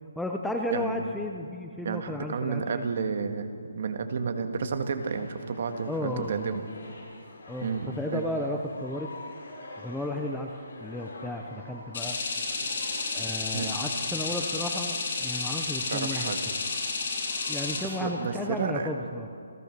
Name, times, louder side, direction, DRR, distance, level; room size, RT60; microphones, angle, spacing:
voice 1, 0.2-2.8 5.9-6.6 7.5-9.1 9.8-12.2 13.1-16.3 17.5-19.3, left 1 dB, ahead, 2 dB, 0.6 m, -34 dB
voice 2, 0.7-1.0 1.8-3.5 3.7-6.6 7.6-8.2 13.5-13.7 15.9-16.4 18.0-18.9, right 5 dB, 40° right, 7 dB, 1.7 m, -31 dB
sound 1, 5.0-18.8, left 2 dB, 60° left, 7.7 m, -46 dB
sound 2, 11.9-17.8, left 4 dB, 45° left, 5.6 m, -31 dB
28.5 x 17.0 x 6.7 m, 2.4 s
hypercardioid pair, 175°, 0 cm